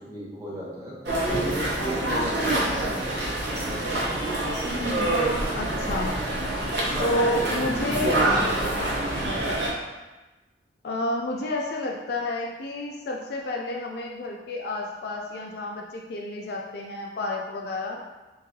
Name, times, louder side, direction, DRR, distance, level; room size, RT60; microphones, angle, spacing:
voice 1, 0.1-3.2 6.8-9.4, equal, 20° right, -8 dB, 0.9 m, -35 dB
sound 1, 1.1-9.7, right 1 dB, 65° right, 0.8 m, -26 dB
voice 2, 5.6-6.2 7.0-8.3 10.8-18.0, left 2 dB, 60° left, -1 dB, 0.4 m, -30 dB
3.7 x 2.7 x 2.7 m, 1.1 s
head